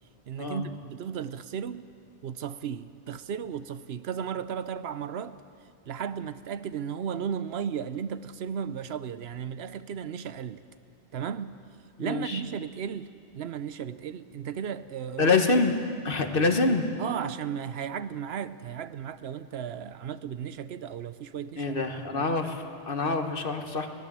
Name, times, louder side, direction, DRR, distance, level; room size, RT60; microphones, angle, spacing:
voice 1, 0.3-1.9 2.2-5.4 5.9-10.6 11.1-11.6 12.0-13.1 13.3-15.4 17.0-21.8 22.1-22.3, right 8 dB, 75° right, 0.9 m, -35 dB
voice 2, 12.0-12.4 15.2-15.7 16.0-16.9 21.6-23.9, left 3 dB, 60° left, 1.5 m, -26 dB
21.0 x 17.0 x 7.4 m
omnidirectional pair, 1.1 m